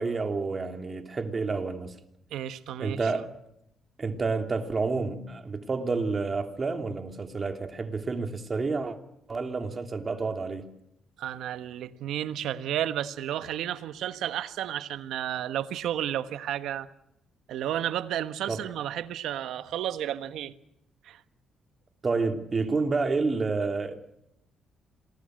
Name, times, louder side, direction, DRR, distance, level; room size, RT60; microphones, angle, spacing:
voice 1, 0.0-1.9 2.8-3.3 4.0-9.0 9.3-10.7 18.5-18.7 22.0-24.0, right 4 dB, 35° right, 3.1 m, -29 dB
voice 2, 2.3-3.1 11.2-16.9 17.5-20.5 21.0-21.2, right 11 dB, 80° right, 1.3 m, -32 dB
27.5 x 20.5 x 6.5 m
cardioid pair, 90°, 0 cm